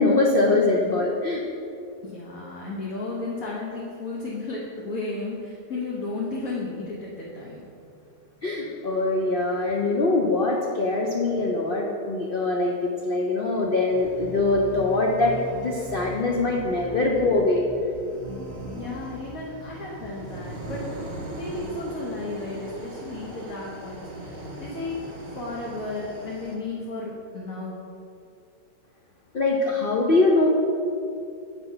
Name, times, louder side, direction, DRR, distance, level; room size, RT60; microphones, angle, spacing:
voice 1, 0.0-1.4 8.4-17.6 29.3-30.5, left 2 dB, 85° left, -1 dB, 0.4 m, -23 dB
voice 2, 2.0-7.7 18.8-20.9 21.4-25.0 25.3-27.8, left 3 dB, 55° left, -4 dB, 1.3 m, -33 dB
sound 1, 13.9-26.6, right 1 dB, 40° right, 1.4 m, -39 dB
7.8 x 4.6 x 5.5 m, 2.5 s
omnidirectional pair, 1.9 m